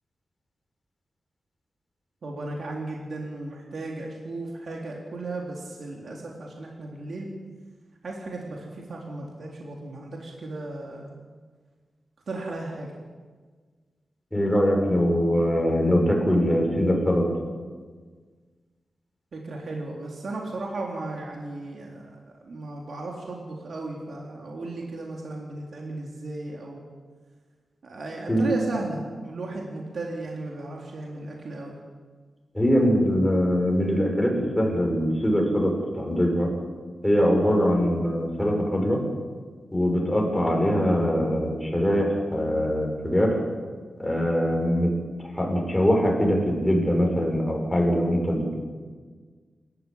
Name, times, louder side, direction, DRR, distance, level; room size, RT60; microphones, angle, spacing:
voice 1, 2.2-7.3 8.0-11.2 12.3-12.9 19.3-26.8 27.8-31.7, right 2 dB, 60° right, -1 dB, 3.9 m, -35 dB
voice 2, 14.3-17.2 28.3-28.5 32.5-36.5 37.0-39.0 39.7-43.4 44.0-44.9 45.2-48.6, equal, 10° left, 0 dB, 6.4 m, -22 dB
28.5 x 14.5 x 8.9 m, 1.5 s
wide cardioid pair, 125°, 0 cm